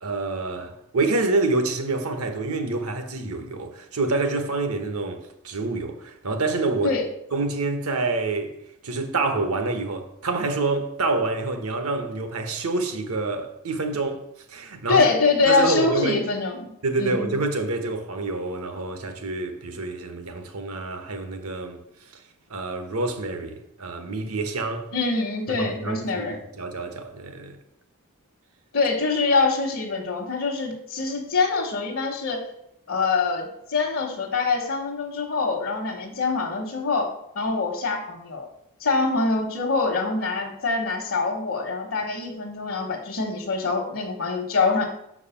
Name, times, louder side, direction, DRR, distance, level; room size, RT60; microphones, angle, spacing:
voice 1, 0.0-7.0 7.3-8.5 8.8-15.1 15.5-16.2 16.8-21.8 22.5-24.9 25.5-27.6, right 3 dB, 70° right, 1.1 m, -27 dB
voice 2, 14.9-16.7 17.0-17.3 24.9-26.4 28.7-32.4 32.9-37.1 37.3-38.5 38.8-44.8, left 4 dB, 65° left, 1.2 m, -24 dB
6.5 x 4.8 x 5.7 m
head